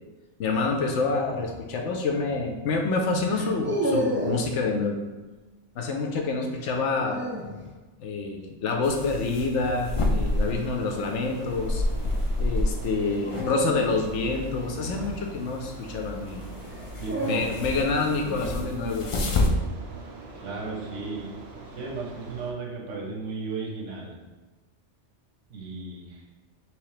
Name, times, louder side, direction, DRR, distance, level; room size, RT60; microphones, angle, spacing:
voice 1, 0.4-5.0 5.8-7.2 8.0-11.8 12.4-16.5 17.2-19.1, left 3 dB, 80° left, 3 dB, 0.9 m, -27 dB
sound 1, 1.4-1.7 3.3-4.5 6.6-7.6 10.0-10.4 13.2-15.6 16.6-17.9, equal, 15° right, 0.4 m, -31 dB
sound 2, 8.8-19.5, left 2 dB, 50° left, 0.4 m, -30 dB
sound 3, 10.1-22.5, right 3 dB, 65° right, 0.9 m, -44 dB
voice 2, 17.0-18.6 20.3-21.3 21.7-24.2 25.5-26.2, right 4 dB, 85° right, -1 dB, 1.3 m, -35 dB
3.4 x 3.1 x 4.8 m, 1.2 s
omnidirectional pair, 1.2 m